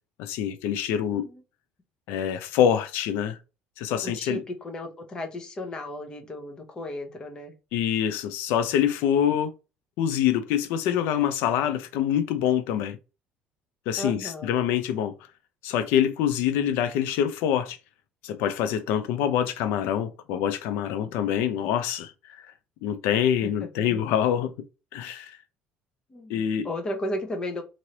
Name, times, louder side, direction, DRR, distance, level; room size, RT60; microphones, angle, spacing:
voice 1, 0.2-1.3 2.1-3.4 3.8-4.4 7.7-9.5 10.0-13.0 13.9-15.1 15.6-17.8 18.2-22.1 22.4-22.5 22.8-24.5 24.9-25.4 26.3-26.7, left 9 dB, 85° left, 0.5 m, -25 dB
voice 2, 3.9-7.5 14.0-14.7 23.4-24.0 26.1-27.6, left 1 dB, 25° left, 0.7 m, -35 dB
3.1 x 2.6 x 2.8 m
cardioid pair, 150°, 4 cm